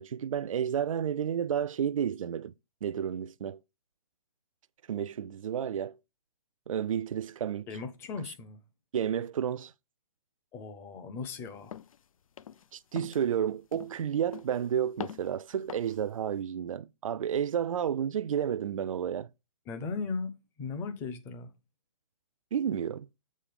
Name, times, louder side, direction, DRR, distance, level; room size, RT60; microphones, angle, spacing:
voice 1, 0.0-2.5 2.8-3.6 4.9-6.0 6.7-7.7 8.9-9.7 12.7-19.3 22.5-23.1, right 9 dB, 65° right, 0.5 m, -31 dB
voice 2, 7.7-8.6 10.5-11.8 19.7-20.3 20.6-21.5, left 4 dB, 15° left, 0.7 m, -37 dB
sound 1, 11.7-12.0 12.4-12.7 13.0-13.3 13.7-14.0 14.3-14.7 15.0-15.3 15.7-16.0, left 8 dB, 65° left, 0.5 m, -43 dB
7.5 x 4.3 x 5.1 m
hypercardioid pair, 155°, 18 cm